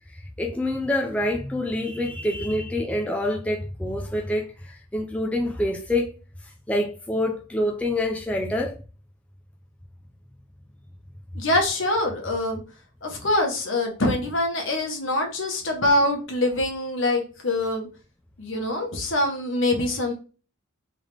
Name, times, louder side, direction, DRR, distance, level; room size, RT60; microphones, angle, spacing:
voice 1, 0.4-6.1 6.7-8.8, left 1 dB, 5° left, 0.4 m, -26 dB
voice 2, 11.3-12.6 13.0-17.9 18.4-20.1, left 1 dB, 65° left, 1.3 m, -24 dB
3.7 x 3.4 x 3.5 m
head